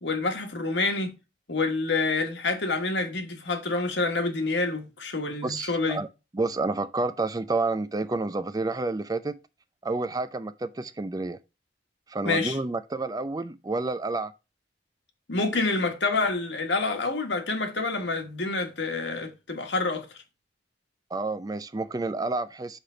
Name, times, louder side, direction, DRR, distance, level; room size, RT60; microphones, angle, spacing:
voice 1, 0.0-1.2 1.5-6.0 12.2-12.6 15.3-20.0, left 3 dB, 70° left, 1.5 m, -27 dB
voice 2, 5.4-6.1 6.3-9.3 9.8-11.4 12.1-14.3 21.1-22.8, right 3 dB, 20° right, 0.4 m, -29 dB
5.9 x 5.0 x 5.7 m
head